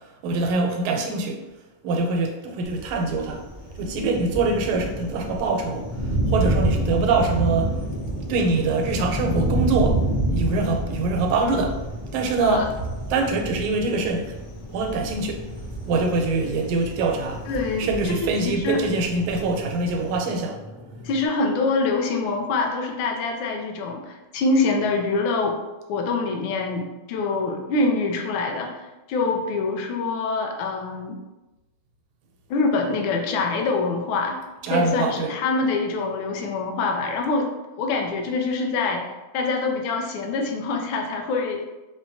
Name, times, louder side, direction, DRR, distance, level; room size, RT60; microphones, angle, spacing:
voice 1, 0.2-1.4 1.8-3.4 3.8-5.9 6.3-7.8 8.3-10.0 10.3-11.8 12.1-12.7 13.1-14.4 14.7-15.4 15.9-17.4 17.8-20.6 34.6-35.3, right 3 dB, 85° right, 3 dB, 1.4 m, -24 dB
Thunder, 2.6-20.2, right 1 dB, 45° left, 1.1 m, -29 dB
sound 1, 4.3-21.3, left 1 dB, 5° left, 0.3 m, -41 dB
voice 2, 17.4-18.8 21.0-25.6 25.9-28.7 29.1-31.2 32.5-34.4 34.7-37.5 37.8-39.0 39.3-41.6, left 3 dB, 75° left, 2 dB, 1.3 m, -25 dB
4.5 x 2.1 x 2.6 m, 1.1 s
omnidirectional pair, 2.3 m